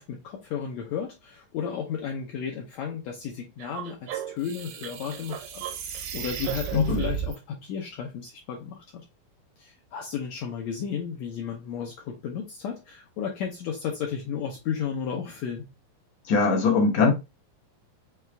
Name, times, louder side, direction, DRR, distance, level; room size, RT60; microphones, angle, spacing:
voice 1, 0.0-9.0 9.6-15.7, left 7 dB, 80° left, 1.5 m, -33 dB
sound 1, 3.6-7.4, right 9 dB, 80° right, 1.9 m, -34 dB
voice 2, 16.3-17.1, left 4 dB, 65° left, 1.8 m, -21 dB
5.7 x 2.3 x 3.2 m
omnidirectional pair, 3.9 m